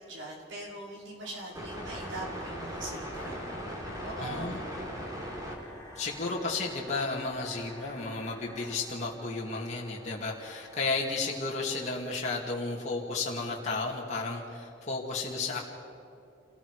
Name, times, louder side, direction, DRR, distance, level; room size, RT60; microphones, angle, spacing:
voice 1, 0.1-3.4 4.0-4.6, right 2 dB, 75° right, -3 dB, 5.3 m, -41 dB
sound 1, 1.2-12.0, equal, 20° right, 3.7 m, -42 dB
sound 2, 1.9-8.7, left 1 dB, 15° left, 2.7 m, -50 dB
voice 2, 4.2-4.6 6.0-15.6, left 3 dB, 40° left, -4 dB, 2.5 m, -33 dB
28.5 x 19.5 x 5.0 m, 2.8 s
head